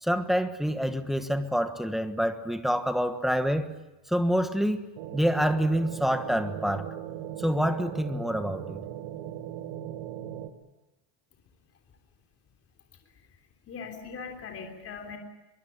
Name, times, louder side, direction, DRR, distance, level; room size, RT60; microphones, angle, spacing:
voice 1, 0.0-3.7 4.1-4.8 5.1-6.9 7.4-8.8, equal, ahead, 8 dB, 1.2 m, -27 dB
sound 1, 5.0-10.5, right 11 dB, 85° right, 2.4 m, -38 dB
voice 2, 13.7-15.2, left 5 dB, 30° left, 3 dB, 3.4 m, -40 dB
24.0 x 23.5 x 8.6 m, 1.0 s
cardioid pair, 170°, 49 cm